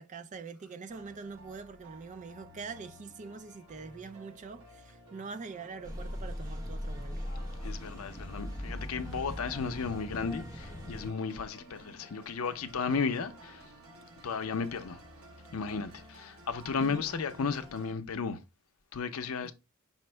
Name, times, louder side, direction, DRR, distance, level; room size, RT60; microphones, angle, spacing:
voice 1, 0.0-7.3 16.8-17.1 19.4-19.5, right 4 dB, 35° right, 0.4 m, -44 dB
sound 1, 0.9-17.9, right 1 dB, 70° right, 1.2 m, -54 dB
sound 2, 5.8-11.1, equal, 15° right, 0.9 m, -39 dB
voice 2, 7.6-13.7 14.2-15.0 15.5-18.4 18.9-19.5, left 5 dB, 70° left, 0.6 m, -34 dB
5.6 x 2.1 x 4.3 m
head